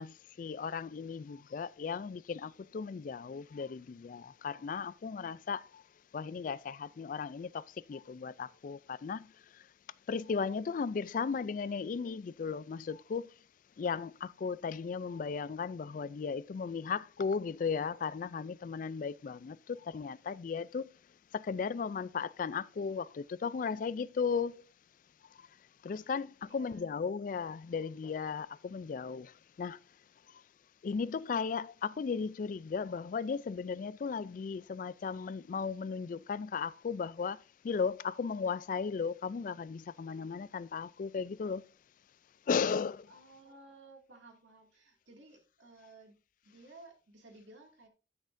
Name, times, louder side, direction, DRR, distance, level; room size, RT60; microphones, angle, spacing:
voice 1, 0.0-5.8 6.1-9.3 10.1-13.3 13.8-20.9 21.3-24.7 25.8-29.3 29.6-29.8 30.8-37.4 37.6-41.6 42.5-43.1, left 5 dB, 45° left, 0.3 m, -36 dB
voice 2, 26.5-26.9 43.1-46.2 46.4-47.9, right 2 dB, 85° right, 2.2 m, -56 dB
12.0 x 6.3 x 2.6 m
head